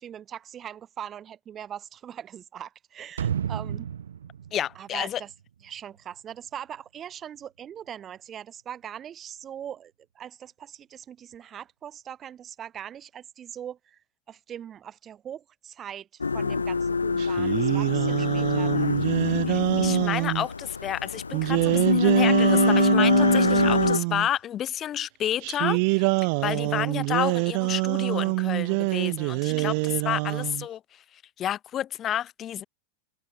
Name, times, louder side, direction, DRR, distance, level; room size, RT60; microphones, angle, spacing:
voice 1, 0.0-3.9 4.7-5.3 5.6-14.0 14.3-19.0 29.5-29.7, right 9 dB, 25° right, 5.9 m, -41 dB
sound 1, 3.2-6.0 6.3-6.4, right 8 dB, 65° right, 3.6 m, -32 dB
voice 2, 4.5-5.2 19.5-26.1 26.4-32.6, left 11 dB, 30° left, 3.7 m, -30 dB
sound 2, 16.2-24.0, left 4 dB, 75° left, 0.7 m, -24 dB
sound 3, 17.2-20.5 21.3-24.3 25.4-30.7, right 33 dB, 45° right, 3.1 m, -25 dB
figure-of-eight pair, 90°, 0 cm